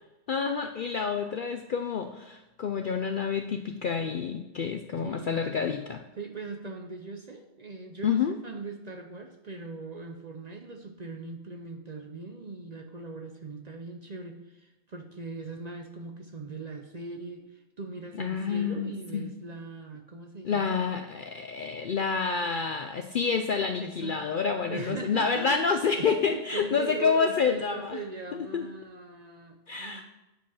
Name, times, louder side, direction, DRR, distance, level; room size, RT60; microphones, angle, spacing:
voice 1, 0.3-6.0 8.0-8.3 18.1-19.3 20.4-28.0 28.3-28.7 29.7-30.0, left 6 dB, 60° left, 6 dB, 0.5 m, -28 dB
voice 2, 4.8-5.4 6.2-20.9 21.6-21.9 23.8-24.3 24.7-30.0, right 3 dB, 40° right, 3 dB, 0.7 m, -40 dB
8.6 x 5.1 x 5.5 m, 0.98 s
omnidirectional pair, 1.3 m